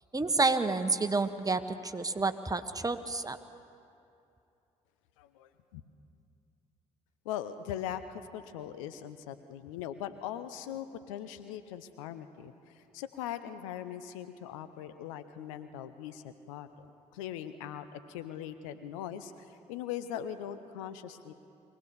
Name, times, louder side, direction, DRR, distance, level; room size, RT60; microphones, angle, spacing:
voice 1, 0.1-3.4, right 3 dB, 20° right, 9 dB, 1.2 m, -29 dB
voice 2, 5.2-5.8 7.2-21.3, left 10 dB, 85° left, 11 dB, 0.8 m, -41 dB
23.0 x 17.0 x 7.0 m, 2.6 s
hypercardioid pair, 45°, 17 cm